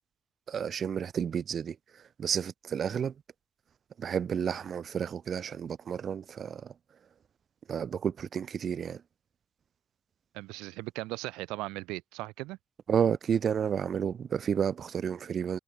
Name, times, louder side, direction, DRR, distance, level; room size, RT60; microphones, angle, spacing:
voice 1, 0.5-3.1 4.0-6.7 7.7-9.0 12.9-15.6, right 7 dB, 60° right, 1.0 m, -31 dB
voice 2, 10.3-12.6, right 21 dB, 90° right, 0.6 m, -38 dB
supercardioid pair, 50°, 0 cm